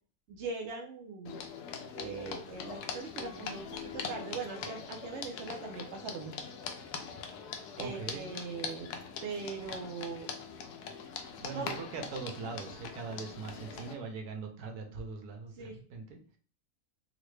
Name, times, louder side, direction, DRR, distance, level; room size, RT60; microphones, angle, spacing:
voice 1, 0.3-1.4 1.9-6.4 7.8-8.9 9.2-10.3 11.5-11.8 15.6-15.8, right 4 dB, 65° right, 1 dB, 0.7 m, -40 dB
sound 1, 1.3-13.9, left 6 dB, 85° left, 1.1 m, -42 dB
voice 2, 7.8-8.3 11.4-16.2, right 4 dB, 85° right, 4 dB, 1.3 m, -41 dB
3.9 x 2.1 x 3.1 m, 0.41 s
omnidirectional pair, 1.6 m